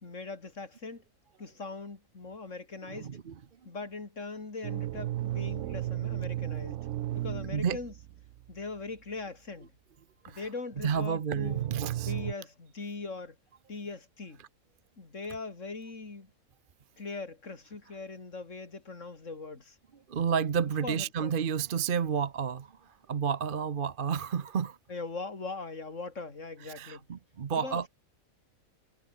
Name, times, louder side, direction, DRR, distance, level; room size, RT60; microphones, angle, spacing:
voice 1, 0.0-1.0 1.4-3.1 3.6-6.9 7.1-7.9 8.5-9.7 10.3-11.6 12.0-13.3 13.7-14.4 15.0-16.3 17.0-19.7 20.8-21.4 24.9-27.0 27.5-27.9, left 3 dB, 65° left, 3.4 m, -40 dB
voice 2, 2.9-3.3 6.1-6.2 7.5-7.8 10.2-10.5 10.8-12.1 20.1-24.8 26.6-27.9, right 7 dB, 45° right, 1.0 m, -31 dB
sound 1, 4.6-8.6 10.7-10.8 11.3-12.3, right 13 dB, 70° right, 0.9 m, -34 dB
omnidirectional pair, 1.4 m